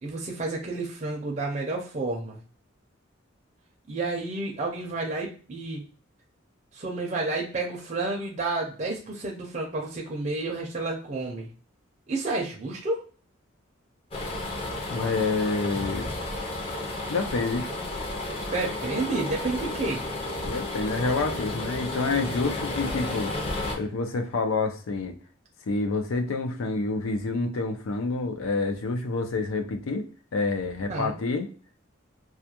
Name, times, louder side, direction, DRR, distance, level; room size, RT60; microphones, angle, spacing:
voice 1, 0.0-2.4 3.9-5.8 6.7-11.5 12.1-13.0 18.5-20.0 30.9-31.2, right 3 dB, 35° right, -1 dB, 0.5 m, -30 dB
sound 1, 14.1-23.8, left 2 dB, 30° left, 0.5 m, -32 dB
voice 2, 14.9-16.1 17.1-17.7 20.5-23.3 23.7-25.2 25.7-30.1 30.3-31.5, left 3 dB, 85° left, 5 dB, 0.5 m, -28 dB
2.3 x 2.2 x 2.8 m, 0.40 s
head